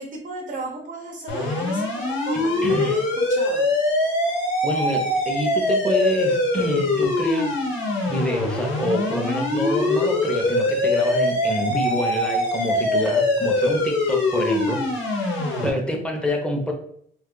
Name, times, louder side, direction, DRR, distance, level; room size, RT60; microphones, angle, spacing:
voice 1, 0.0-3.7 15.4-15.9, right 2 dB, 50° right, 2 dB, 0.7 m, -35 dB
sound 1, 1.3-15.7, left 2 dB, 80° left, 1.0 m, -23 dB
voice 2, 2.6-2.9 4.6-7.6 8.1-16.7, equal, 5° left, 1 dB, 0.8 m, -27 dB
2.5 x 2.4 x 3.8 m, 0.67 s
cardioid pair, 90°, 20 cm